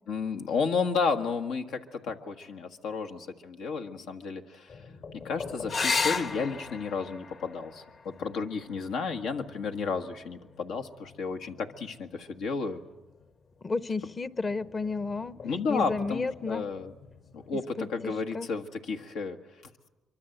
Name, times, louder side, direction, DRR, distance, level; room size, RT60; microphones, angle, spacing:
voice 1, 0.1-4.8 5.1-12.8 15.4-16.9 17.3-19.4, left 5 dB, 85° left, 1.6 m, -32 dB
sound 1, 4.7-17.6, left 5 dB, 65° left, 4.9 m, -49 dB
sound 2, 5.7-10.7 12.6-13.2 16.7-16.8 17.1-17.2, left 4 dB, 50° left, 1.5 m, -35 dB
voice 2, 13.6-16.6 17.8-18.5, left 3 dB, 30° left, 0.9 m, -32 dB
24.0 x 24.0 x 8.0 m
cardioid pair, 90°, 0 cm